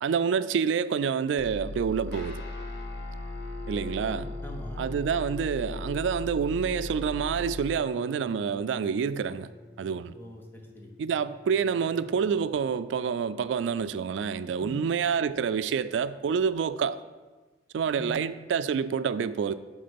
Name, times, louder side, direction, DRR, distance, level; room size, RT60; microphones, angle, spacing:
voice 1, 0.0-2.4 3.7-4.3 4.8-9.5 9.8-10.1 11.0-17.0 17.7-19.5, right 6 dB, 90° right, 0.3 m, -28 dB
sound 1, 1.4-7.8, left 2 dB, 80° left, 0.4 m, -38 dB
Guitar, 2.1-13.5, left 4 dB, 65° left, 0.8 m, -46 dB
voice 2, 4.0-4.9 10.1-10.9 14.6-14.8 18.0-18.2, right 1 dB, 10° left, 0.9 m, -43 dB
7.7 x 3.7 x 5.2 m
head